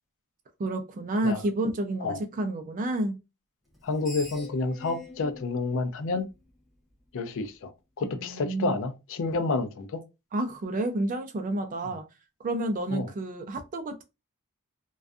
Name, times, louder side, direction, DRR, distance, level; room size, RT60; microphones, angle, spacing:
voice 1, 0.6-3.2 8.0-8.7 10.3-12.0 12.4-14.0, right 1 dB, 35° right, 0.4 m, -30 dB
Screech, 3.7-6.9, left 2 dB, ahead, 0.7 m, -46 dB
voice 2, 3.8-6.3 7.1-7.7 8.0-10.0 12.9-13.1, left 3 dB, 60° left, 0.4 m, -29 dB
2.5 x 2.2 x 2.4 m
head